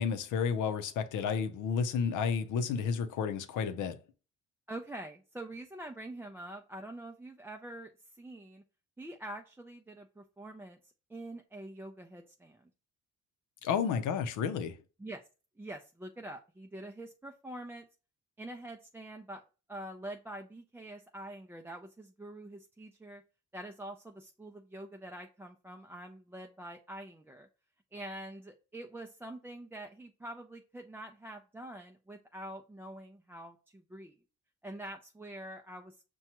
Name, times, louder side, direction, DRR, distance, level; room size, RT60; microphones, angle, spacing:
voice 1, 0.0-4.0 13.6-14.8, left 6 dB, 85° left, 0.6 m, -31 dB
voice 2, 4.7-8.6 9.0-10.8 11.1-12.7 15.0-15.2 15.6-17.9 18.4-23.2 23.5-27.5 27.9-34.2 34.6-35.9, right 1 dB, 10° right, 0.4 m, -45 dB
6.0 x 2.3 x 2.9 m
cardioid pair, 90°, 30 cm